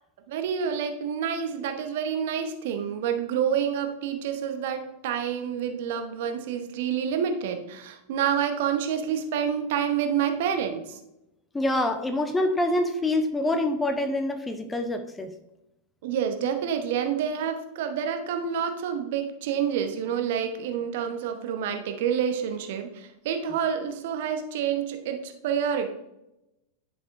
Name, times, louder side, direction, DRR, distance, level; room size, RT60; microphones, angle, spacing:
voice 1, 0.3-11.0 16.0-25.9, right 8 dB, 55° right, 7 dB, 0.8 m, -28 dB
voice 2, 11.5-15.3, left 1 dB, 10° left, 7 dB, 0.7 m, -26 dB
10.5 x 5.3 x 2.6 m, 0.89 s
figure-of-eight pair, 90°, 0 cm